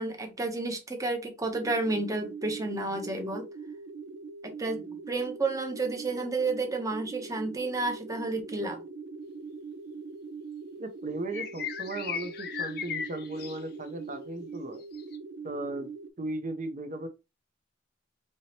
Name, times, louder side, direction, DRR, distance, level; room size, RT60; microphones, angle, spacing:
voice 1, 0.0-3.5 4.4-8.8, right 2 dB, 20° right, 0.8 m, -31 dB
sound 1, 1.5-16.1, right 4 dB, 85° right, 0.6 m, -42 dB
voice 2, 10.8-14.8 15.4-17.1, right 2 dB, 45° right, 0.7 m, -37 dB
sound 2, 11.3-13.6 15.0-15.2, left 7 dB, 60° left, 0.6 m, -36 dB
4.8 x 2.9 x 2.8 m
head